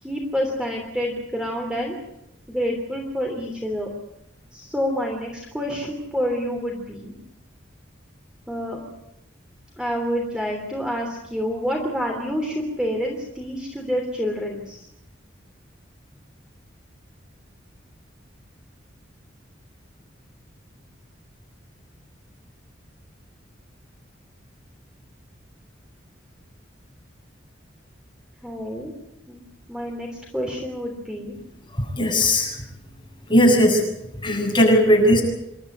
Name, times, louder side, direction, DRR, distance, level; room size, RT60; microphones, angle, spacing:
voice 1, 0.0-2.0 2.5-3.9 4.5-7.1 8.5-8.8 9.8-14.9 28.4-28.9 29.3-29.4 29.7-30.1 30.3-31.3, equal, 5° right, 1 dB, 3.1 m, -28 dB
voice 2, 31.7-32.6 33.3-33.8 34.2-35.2, equal, 25° left, -1 dB, 7.2 m, -17 dB
28.0 x 13.0 x 9.9 m, 0.85 s
head